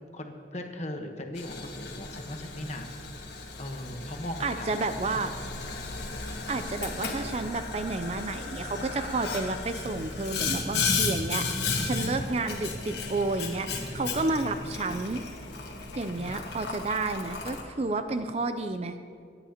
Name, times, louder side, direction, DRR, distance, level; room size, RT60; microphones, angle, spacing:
voice 1, 0.1-2.9 3.6-5.3 14.0-15.0 16.2-16.6 17.6-17.8, left 1 dB, 35° left, 4 dB, 1.1 m, -39 dB
Boiling, 1.4-17.6, left 4 dB, 60° left, 1.6 m, -34 dB
voice 2, 4.4-5.3 6.5-13.7 13.9-15.2 16.0-19.0, right 3 dB, 35° right, 9 dB, 0.5 m, -31 dB
27.5 x 9.9 x 2.9 m, 2.4 s
head